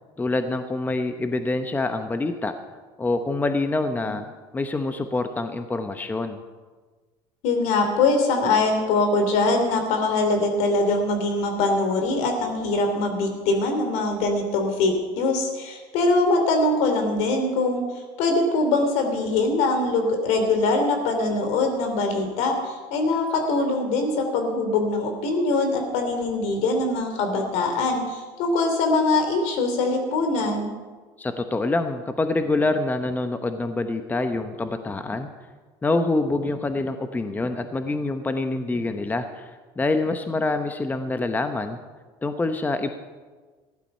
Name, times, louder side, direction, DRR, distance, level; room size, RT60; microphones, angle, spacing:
voice 1, 0.2-2.5 3.0-4.3 4.5-6.4 31.2-35.3 35.8-41.8 42.2-42.9, left 2 dB, 15° left, 8 dB, 0.9 m, -26 dB
voice 2, 7.4-17.8 18.2-30.7, left 3 dB, 70° left, 5 dB, 3.1 m, -23 dB
15.0 x 11.5 x 5.5 m, 1.4 s
supercardioid pair, 100°, 12 cm